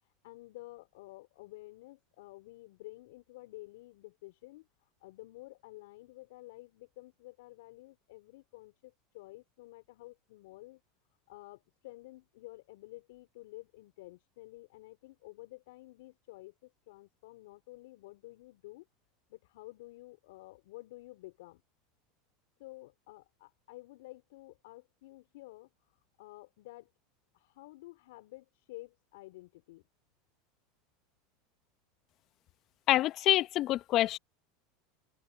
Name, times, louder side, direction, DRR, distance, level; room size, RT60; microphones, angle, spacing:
voice 1, 0.0-10.8 11.3-18.9 19.3-21.6 22.6-26.9 27.3-29.8, left 20 dB, 70° left, 4.3 m, -51 dB
voice 2, 32.9-34.2, left 14 dB, 50° left, 1.1 m, -26 dB
hypercardioid pair, 90°, 0 cm